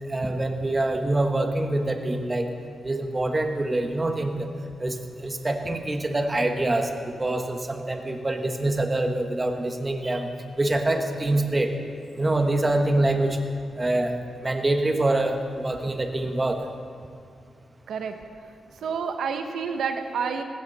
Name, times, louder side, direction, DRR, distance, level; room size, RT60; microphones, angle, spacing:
voice 1, 0.0-2.5 2.8-4.5 4.8-10.3 10.5-11.7 12.1-13.4 13.8-14.1 14.4-16.6, right 2 dB, 25° right, 5 dB, 1.4 m, -25 dB
voice 2, 18.8-20.4, right 6 dB, 85° right, 6 dB, 1.0 m, -29 dB
18.5 x 16.5 x 4.1 m, 2.2 s
cardioid pair, 95°, 0 cm